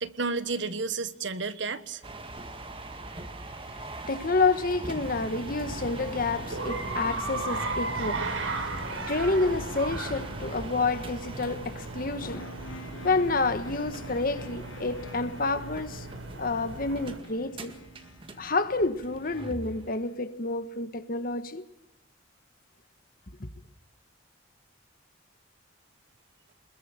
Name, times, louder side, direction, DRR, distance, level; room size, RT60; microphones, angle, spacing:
voice 1, 0.0-2.0, right 4 dB, 65° right, 1.3 m, -31 dB
sound 1, 2.0-19.9, right 2 dB, 25° right, 1.9 m, -42 dB
voice 2, 3.7-12.6 13.0-16.1 16.4-17.7 18.4-21.6 23.4-23.5, left 3 dB, 45° left, 1.4 m, -29 dB
sound 2, 5.0-17.2, right 3 dB, 85° right, 4.6 m, -36 dB
sound 3, 12.3-20.1, equal, 80° left, 1.5 m, -49 dB
27.0 x 21.5 x 9.0 m
head